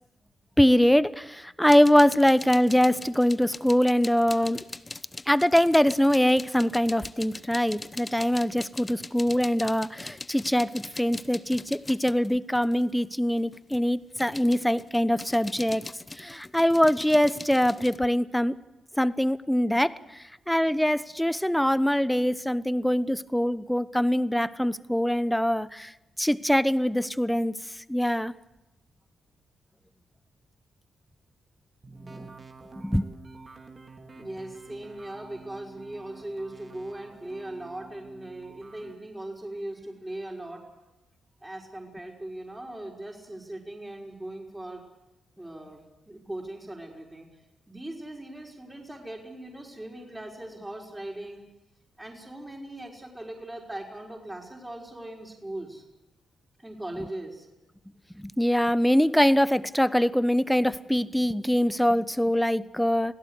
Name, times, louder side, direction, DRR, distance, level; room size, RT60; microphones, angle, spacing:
voice 1, 0.6-4.6 5.3-15.9 16.2-18.6 19.0-25.9 26.2-28.3 32.0-32.3 32.8-33.1 58.2-63.1, equal, 5° left, 16 dB, 1.0 m, -23 dB
sound 1, 1.7-12.9 13.4-18.0, left 2 dB, 30° left, 1.1 m, -41 dB
sound 2, 31.8-38.9, right 3 dB, 40° right, 3.6 m, -49 dB
voice 2, 34.2-40.7 41.4-44.8 45.4-47.3 47.7-51.4 52.0-55.8 56.6-57.5, right 1 dB, 15° right, 0 dB, 5.6 m, -39 dB
26.0 x 17.0 x 8.2 m, 0.99 s
hypercardioid pair, 40°, 0 cm